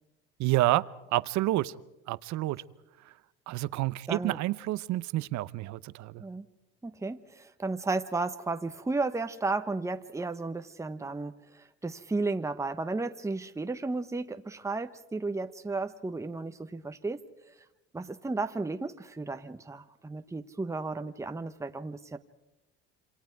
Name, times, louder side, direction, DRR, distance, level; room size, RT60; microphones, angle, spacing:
voice 1, 0.4-1.7 2.1-2.6 3.5-6.2, right 16 dB, 65° right, 17 dB, 0.8 m, -29 dB
voice 2, 4.1-4.4 6.2-6.5 6.8-17.2 17.9-22.2, right 3 dB, 10° right, 8 dB, 1.0 m, -33 dB
27.5 x 25.5 x 4.7 m, 0.97 s
supercardioid pair, 100°, 31 cm